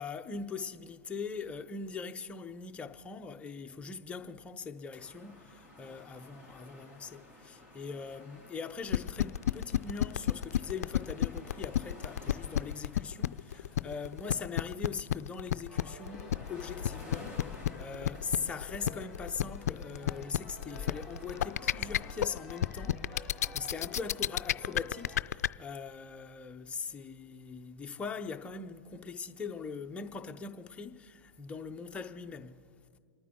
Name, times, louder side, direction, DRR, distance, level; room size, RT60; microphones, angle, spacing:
voice 1, 0.0-32.6, left 5 dB, 15° left, 0.7 m, -41 dB
sound 1, 5.0-22.1, left 1 dB, 25° right, 4.1 m, -54 dB
sound 2, 8.9-25.5, left 11 dB, 75° left, 0.3 m, -30 dB
sound 3, 15.7-25.2, left 4 dB, 10° right, 3.5 m, -48 dB
27.5 x 9.3 x 3.8 m
hypercardioid pair, 125°, 8 cm